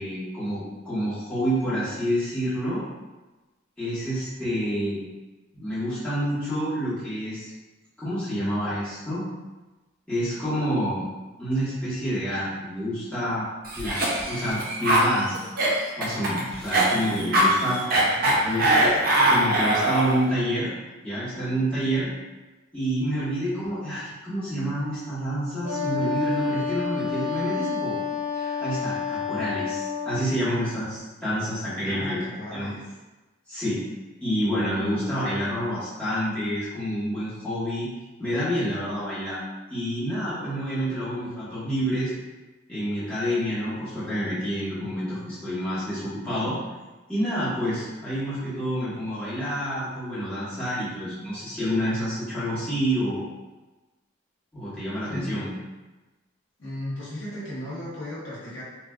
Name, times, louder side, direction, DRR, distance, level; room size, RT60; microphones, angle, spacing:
voice 1, 0.0-2.8 3.8-5.0 5.5-7.5 8.0-9.2 10.1-11.0 11.4-13.4 13.7-15.5 16.0-18.0 18.4-18.9 19.3-20.7 21.0-22.1 22.7-28.0 28.4-32.2 32.5-32.7 33.5-33.8 34.2-37.9 38.2-39.4 39.7-42.1 42.7-46.6 47.1-53.2 54.5-55.5, equal, 5° left, -13 dB, 1.1 m, -28 dB
Cough, 13.7-20.2, right 1 dB, 40° right, 0.5 m, -22 dB
voice 2, 18.0-18.7 31.8-32.8 55.1-55.4 56.6-58.6, left 1 dB, 55° left, -7 dB, 1.0 m, -36 dB
Wind instrument woodwind instrument, 25.6-30.3, left 5 dB, 60° right, 1.4 m, -29 dB
3.2 x 2.4 x 2.3 m, 1.1 s
head